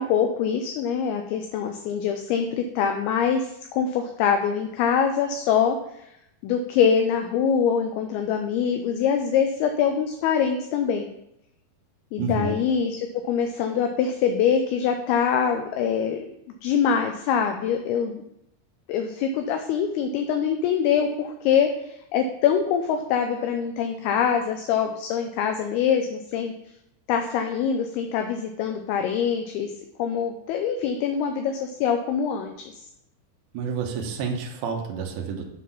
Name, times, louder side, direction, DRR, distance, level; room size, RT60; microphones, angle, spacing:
voice 1, 0.0-6.1 6.4-11.1 12.1-16.2 16.6-18.2 18.9-26.5 27.1-29.7 30.0-32.7, left 7 dB, 80° left, 5 dB, 2.4 m, -24 dB
voice 2, 12.2-12.6 33.5-35.4, right 5 dB, 75° right, 1 dB, 1.8 m, -29 dB
7.3 x 4.0 x 5.7 m, 0.80 s
omnidirectional pair, 4.7 m